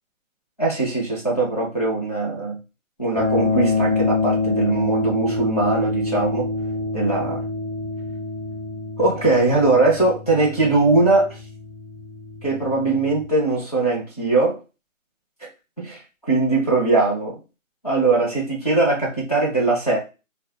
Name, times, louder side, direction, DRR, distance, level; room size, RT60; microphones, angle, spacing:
voice 1, 0.6-2.6 3.0-6.5 6.9-7.4 9.0-11.4 12.4-14.6 15.8-16.0 16.3-17.4 17.8-20.0, right 3 dB, 30° left, -3 dB, 0.8 m, -20 dB
sound 1, 3.1-13.2, left 3 dB, 60° left, 1.1 m, -26 dB
2.1 x 2.0 x 2.9 m, 0.28 s
figure-of-eight pair, 170°, 41 cm